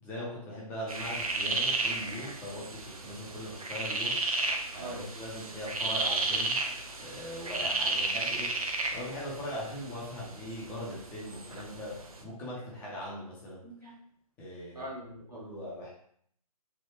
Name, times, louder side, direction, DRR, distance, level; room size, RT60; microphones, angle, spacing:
voice 1, 0.0-4.4 4.7-6.6 7.0-13.6 14.4-14.8 15.3-15.9, equal, 10° left, -6 dB, 0.5 m, -40 dB
sound 1, 0.9-12.2, right 3 dB, 70° right, 0.6 m, -33 dB
voice 2, 4.8-5.1 13.6-14.0 14.7-15.4, right 1 dB, 90° right, -4 dB, 1.3 m, -42 dB
3.3 x 2.2 x 3.1 m, 0.63 s
figure-of-eight pair, 135°, 19 cm